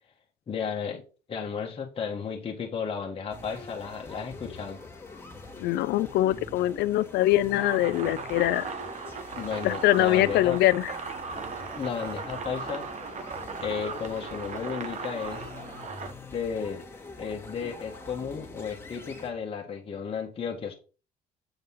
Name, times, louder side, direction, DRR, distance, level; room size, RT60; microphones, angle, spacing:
voice 1, 0.5-1.0 1.3-4.8 9.3-10.6 11.7-12.9 13.6-15.5 16.3-16.8 17.2-20.7, left 6 dB, 35° left, 1.6 m, -33 dB
sound 1, 3.3-19.3, left 3 dB, 15° left, 2.1 m, -44 dB
voice 2, 5.6-8.6 9.6-10.9, left 15 dB, 80° left, 0.5 m, -23 dB
sound 2, 7.6-16.1, right 5 dB, 45° right, 1.2 m, -38 dB
8.0 x 4.1 x 5.5 m
cardioid pair, 110°, 17 cm